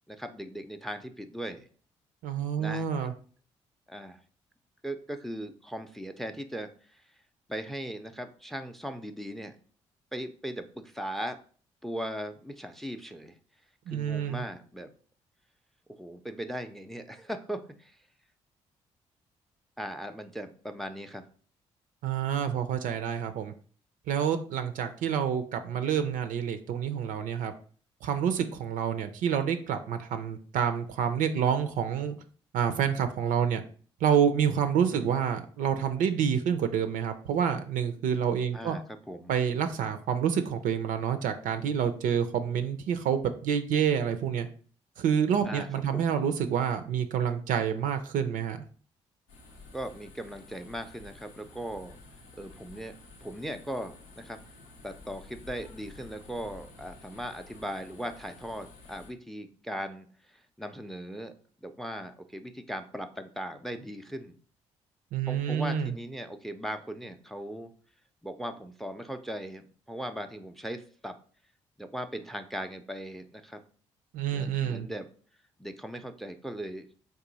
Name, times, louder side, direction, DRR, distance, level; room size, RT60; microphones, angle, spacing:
voice 1, 0.1-1.7 2.6-2.9 3.9-4.2 4.8-7.0 7.5-9.6 10.1-11.4 11.8-13.3 13.9-14.9 16.0-17.9 19.8-21.2 34.8-35.0 38.5-39.3 45.4-46.1 49.7-52.0 52.3-52.9 53.2-54.4 54.8-60.1 60.6-61.3 61.6-64.4 65.3-67.7 68.2-71.2 71.8-73.6 74.3-75.1 75.6-76.9, equal, ahead, 8 dB, 0.5 m, -38 dB
voice 2, 2.2-3.1 13.9-14.5 22.0-23.5 24.1-27.5 28.0-32.2 32.5-33.6 34.0-38.8 39.3-44.5 45.0-48.6 65.1-65.9 74.1-74.9, right 8 dB, 60° right, 9 dB, 0.5 m, -28 dB
sound 1, 49.3-59.1, left 3 dB, 80° left, 0.6 m, -51 dB
3.6 x 2.7 x 3.9 m, 0.43 s
hypercardioid pair, 40°, 15 cm